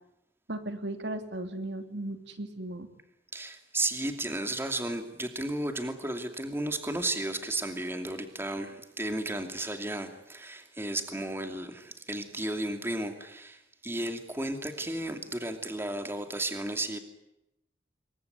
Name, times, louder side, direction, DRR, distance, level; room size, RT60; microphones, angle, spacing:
voice 1, 0.5-2.9, right 1 dB, 65° right, 7 dB, 2.7 m, -36 dB
voice 2, 3.3-17.0, right 1 dB, 15° right, 6 dB, 2.7 m, -33 dB
28.0 x 22.5 x 9.3 m, 0.87 s
head